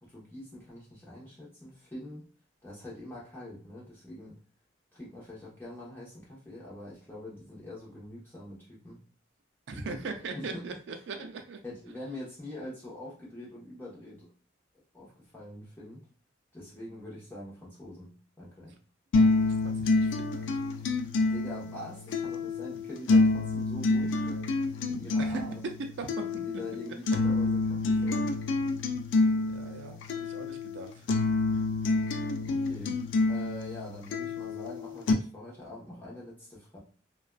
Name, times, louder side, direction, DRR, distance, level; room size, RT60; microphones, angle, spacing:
voice 1, 0.0-2.3 2.6-4.4 4.9-9.0 9.7-10.0 10.3-10.6 11.6-14.3 14.9-16.1 16.5-18.8 21.3-24.5 24.9-25.6 26.3-28.4 32.4-33.0 33.3-36.8, left 1 dB, 10° left, -6 dB, 0.8 m, -44 dB
voice 2, 9.7-11.6 19.4-20.7 25.2-25.4 26.0-26.4 29.5-31.0, right 4 dB, 65° right, 5 dB, 0.3 m, -40 dB
sound 1, 19.1-35.1, left 3 dB, 75° left, 0.3 m, -28 dB
2.4 x 2.2 x 2.3 m, 0.40 s
head